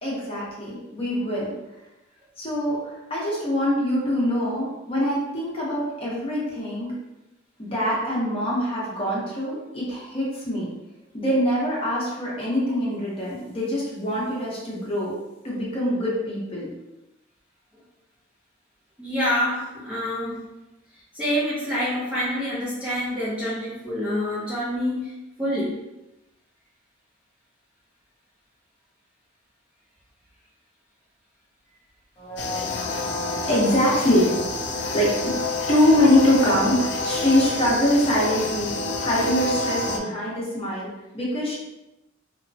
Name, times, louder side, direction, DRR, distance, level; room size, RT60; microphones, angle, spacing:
voice 1, 0.0-1.5 2.4-6.9 7.6-10.7 11.1-15.1 15.4-16.7 32.2-41.6, left 1 dB, 30° left, -6 dB, 0.8 m, -24 dB
voice 2, 19.0-20.5 21.1-25.8, equal, 5° right, -9 dB, 0.5 m, -27 dB
sound 1, 32.4-40.0, left 3 dB, 60° left, 0.3 m, -28 dB
2.9 x 2.1 x 2.7 m, 0.97 s
head